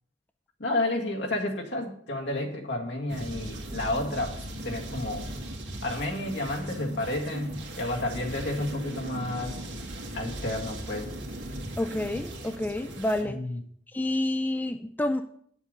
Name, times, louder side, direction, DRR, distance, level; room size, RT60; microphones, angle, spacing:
voice 1, 0.6-5.3 5.8-9.7 10.1-11.1 13.2-13.6, left 1 dB, 70° left, 0 dB, 1.9 m, -31 dB
sound 1, 3.1-13.2, right 1 dB, 80° right, 2.0 m, -38 dB
voice 2, 11.8-13.4 13.9-15.2, left 1 dB, 10° left, 8 dB, 0.3 m, -29 dB
9.5 x 7.2 x 5.2 m, 0.64 s
head